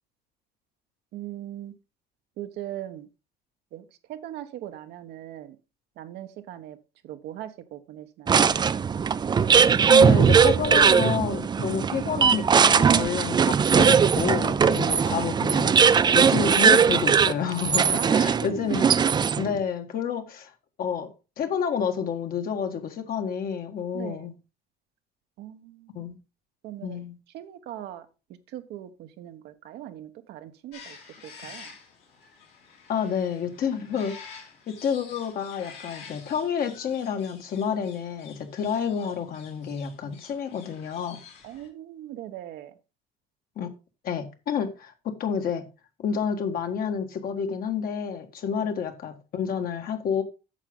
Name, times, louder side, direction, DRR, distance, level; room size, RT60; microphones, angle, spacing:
voice 1, 1.1-1.7 2.4-3.1 3.7-5.6 6.0-6.8 7.0-8.6 14.8-14.9 17.9-18.7 23.9-24.2 25.4-26.0 26.6-27.0 27.3-28.1 28.5-31.0 31.2-31.7 41.4-42.7 48.5-48.7, right 12 dB, 80° right, 1.1 m, -40 dB
sound 1, 8.3-19.6, right 6 dB, 25° right, 0.4 m, -20 dB
voice 2, 9.8-20.5 20.8-21.1 21.4-24.3 25.9-26.2 26.8-27.1 32.9-41.2 43.5-43.7 44.0-45.7 46.0-50.2, left 7 dB, 60° left, 1.6 m, -29 dB
sound 2, 30.7-41.7, left 6 dB, 80° left, 3.8 m, -48 dB
8.9 x 6.8 x 3.8 m
cardioid pair, 110°, 17 cm